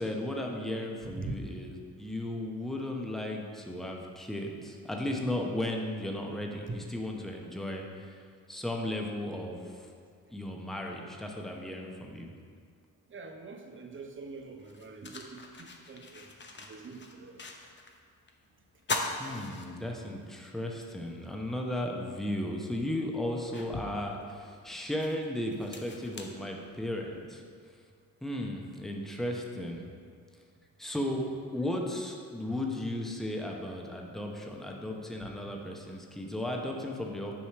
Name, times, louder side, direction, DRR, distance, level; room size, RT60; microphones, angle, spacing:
voice 1, 0.0-8.2 8.5-9.9 10.3-12.3 19.2-27.4 28.2-29.9 30.8-37.3, left 1 dB, ahead, 0 dB, 0.9 m, -35 dB
voice 2, 13.1-16.3 16.6-17.4 35.2-35.3, right 3 dB, 30° right, 4 dB, 0.8 m, -43 dB
sound 1, 14.0-14.1 14.6-18.0 18.3-18.4 18.8-20.3 20.7-20.8 22.2-22.3 22.9-27.1, left 3 dB, 30° left, 0.8 m, -40 dB
7.2 x 3.1 x 5.9 m, 2.2 s
supercardioid pair, 55°, 37 cm